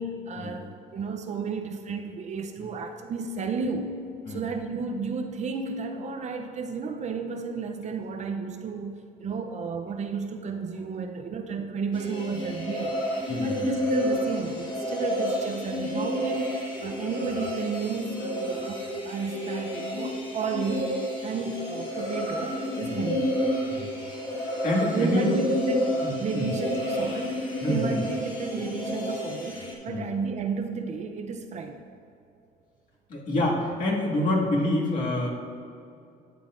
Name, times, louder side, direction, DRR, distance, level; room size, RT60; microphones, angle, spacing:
voice 1, 0.0-13.0 13.4-20.9 21.2-23.3 24.9-27.4 27.7-31.8, right 5 dB, 45° right, 5 dB, 0.6 m, -32 dB
sound 1, 11.9-29.7, equal, 30° left, 1.7 m, -30 dB
voice 2, 13.3-13.7 22.8-23.0 23.7-23.9 24.6-25.4 26.0-26.5 27.6-28.0 29.9-30.0 33.1-35.3, left 1 dB, 50° left, -4 dB, 2.0 m, -27 dB
12.5 x 7.8 x 2.5 m, 2.6 s
cardioid pair, 110°, 17 cm